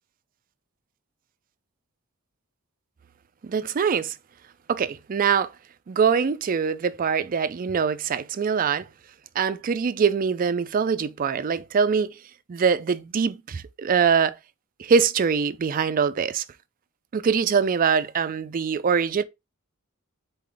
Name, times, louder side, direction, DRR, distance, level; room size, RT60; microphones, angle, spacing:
voice 1, 3.4-4.1 4.7-5.5 5.9-8.9 9.4-12.1 12.5-14.3 14.8-16.4 17.1-19.2, right 6 dB, 40° right, 0.4 m, -23 dB
4.1 x 3.4 x 3.8 m
head